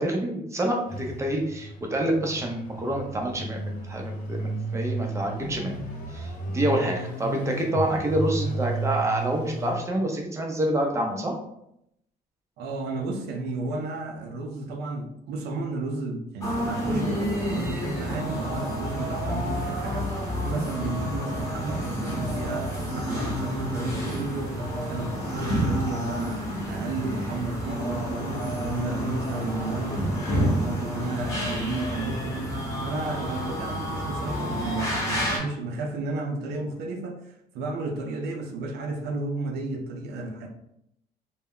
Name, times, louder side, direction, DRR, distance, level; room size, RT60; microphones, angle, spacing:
voice 1, 0.0-5.8 6.1-11.3, right 1 dB, 15° right, 1 dB, 0.6 m, -27 dB
sound 1, 0.8-9.7, right 2 dB, 55° left, 0.7 m, -33 dB
voice 2, 12.6-20.1 20.4-40.5, right 2 dB, 75° right, 3 dB, 0.6 m, -32 dB
sound 2, 16.4-35.4, equal, 20° left, 0.9 m, -29 dB
2.2 x 2.1 x 3.6 m, 0.78 s
cardioid pair, 110°, 17 cm